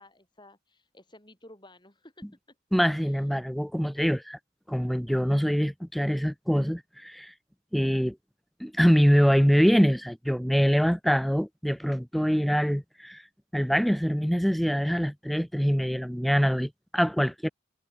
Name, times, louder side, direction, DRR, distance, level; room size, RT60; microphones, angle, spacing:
voice 1, 0.0-2.6 3.0-3.3, left 1 dB, 20° left, 7.3 m, -54 dB
voice 2, 2.7-4.4 4.7-7.3 7.7-8.2 8.6-13.2 13.5-17.5, equal, ahead, 0.7 m, -24 dB
head